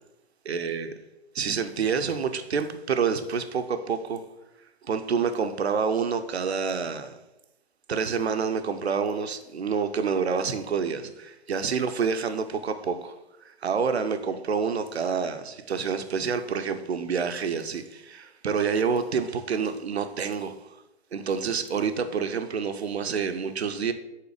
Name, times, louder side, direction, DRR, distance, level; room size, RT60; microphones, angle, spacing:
voice 1, 0.5-0.9 1.3-4.2 4.8-7.2 7.9-13.1 13.6-20.7 21.1-23.9, right 6 dB, 75° right, 9 dB, 0.7 m, -28 dB
5.7 x 3.7 x 4.8 m, 0.95 s
figure-of-eight pair, 125°, 33 cm